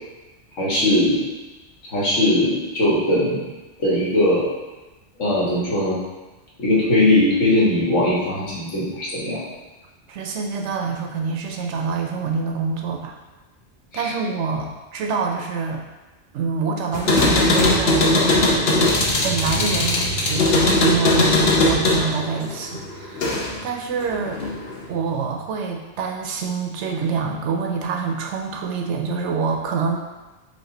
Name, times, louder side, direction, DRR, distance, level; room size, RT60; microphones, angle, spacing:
voice 1, 0.6-1.2 1.9-3.4 3.8-4.5 5.2-6.0 6.6-9.4 13.9-14.1, left 1 dB, 85° left, -7 dB, 1.7 m, -19 dB
voice 2, 10.1-13.2 13.9-15.8 16.3-18.3 19.2-24.4 24.9-30.0, right 5 dB, 75° right, 2 dB, 0.9 m, -26 dB
sound 1, 16.9-23.7 24.0-24.9, left 2 dB, 60° left, 0.9 m, -19 dB
5.1 x 2.6 x 3.8 m, 1.1 s
omnidirectional pair, 1.2 m